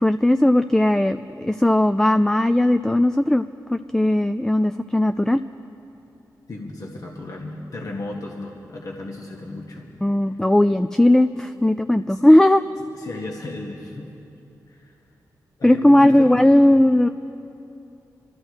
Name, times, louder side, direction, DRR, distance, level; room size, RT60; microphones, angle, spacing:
voice 1, 0.0-5.4 10.0-12.6 15.6-17.1, left 1 dB, 5° left, 9 dB, 0.4 m, -17 dB
voice 2, 6.5-9.9 12.1-12.3 12.9-14.1 14.7-15.0 15.6-16.8, left 2 dB, 55° left, -2 dB, 1.7 m, -35 dB
25.0 x 14.0 x 3.2 m, 2.8 s
cardioid pair, 50°, 7 cm